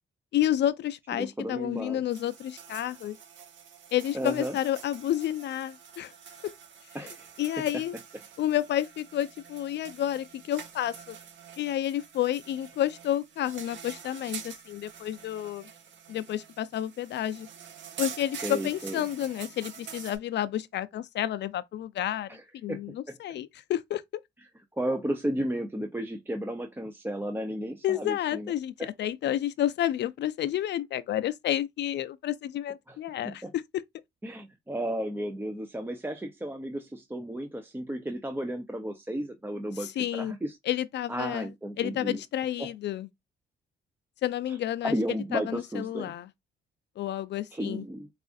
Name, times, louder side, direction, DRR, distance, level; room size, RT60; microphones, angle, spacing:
voice 1, 0.3-3.2 3.9-6.1 6.4-6.5 7.4-7.9 8.4-11.2 11.6-15.7 16.1-17.5 18.0-24.2 27.8-33.6 39.8-40.3 40.7-41.5 41.8-43.1 44.2-44.9 45.3-46.3 47.0-47.8, left 12 dB, 60° left, 0.4 m, -30 dB
voice 2, 1.1-2.0 4.1-4.6 6.9-7.6 18.4-19.0 22.3-22.4 22.7-23.2 24.8-28.5 32.9-33.0 33.2-33.5 34.2-40.6 41.1-42.2 42.6-42.7 44.5-46.1 47.5-48.1, right 1 dB, 10° right, 0.6 m, -34 dB
sound 1, 2.1-20.2, right 7 dB, 70° right, 1.0 m, -46 dB
4.7 x 2.4 x 2.4 m
cardioid pair, 90°, 20 cm